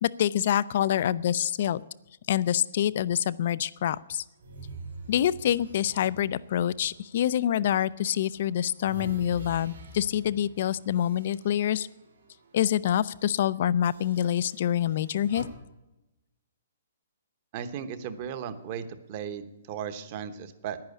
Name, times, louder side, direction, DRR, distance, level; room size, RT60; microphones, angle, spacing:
voice 1, 0.0-1.8 2.3-4.2 5.1-11.9 12.5-15.5, left 10 dB, 45° left, 19 dB, 0.5 m, -26 dB
sound 1, 4.4-7.7 8.2-12.5 12.8-13.0 13.8-15.4, right 3 dB, 90° right, 4.5 m, -46 dB
voice 2, 17.5-20.8, right 8 dB, 30° right, 12 dB, 1.0 m, -36 dB
10.5 x 10.0 x 8.3 m, 0.97 s
hypercardioid pair, 170°, 0 cm